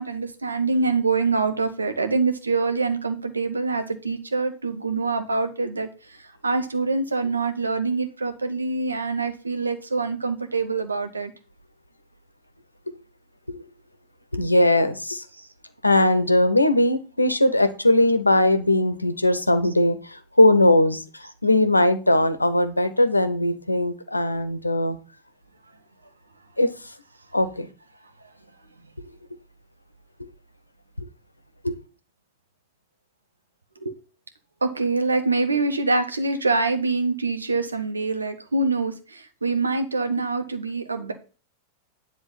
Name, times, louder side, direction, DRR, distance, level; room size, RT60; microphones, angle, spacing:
voice 1, 0.0-11.3 15.3-15.5 19.6-19.7 33.8-34.0 34.6-41.1, right 3 dB, 80° right, 1.1 m, -25 dB
voice 2, 14.3-15.2 15.8-25.0 26.6-26.7 27.3-27.7 31.6-31.7, left 1 dB, 85° left, 0.9 m, -20 dB
9.9 x 3.6 x 7.1 m
figure-of-eight pair, 90°, 0 cm